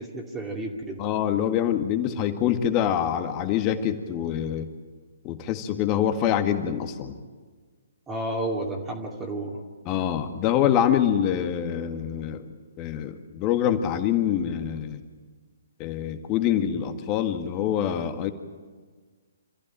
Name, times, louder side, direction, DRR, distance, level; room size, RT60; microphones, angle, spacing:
voice 1, 0.0-1.0 8.1-9.6, right 1 dB, 10° right, -1 dB, 2.5 m, -31 dB
voice 2, 1.0-4.7 5.2-7.1 9.9-12.4 12.8-15.0 15.8-18.3, left 10 dB, 25° left, 7 dB, 1.8 m, -25 dB
27.0 x 15.0 x 9.2 m, 1.5 s
figure-of-eight pair, 130°, 0 cm